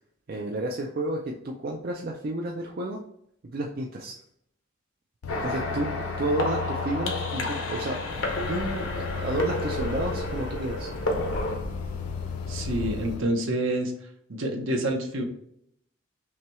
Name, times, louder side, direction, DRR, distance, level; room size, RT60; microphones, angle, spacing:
voice 1, 0.3-3.0 3.4-4.2 5.4-5.9 6.2-8.0 8.5-10.9, right 1 dB, 45° right, 1 dB, 0.4 m, -31 dB
sound 1, 5.2-13.2, left 7 dB, 85° left, 0.4 m, -36 dB
sound 2, 5.3-11.6, left 1 dB, 65° left, 0.8 m, -31 dB
sound 3, 8.1-13.2, equal, 35° left, 0.6 m, -38 dB
voice 2, 12.5-13.9 14.3-15.2, right 1 dB, 65° right, 3 dB, 0.9 m, -27 dB
5.7 x 2.3 x 3.0 m, 0.72 s
head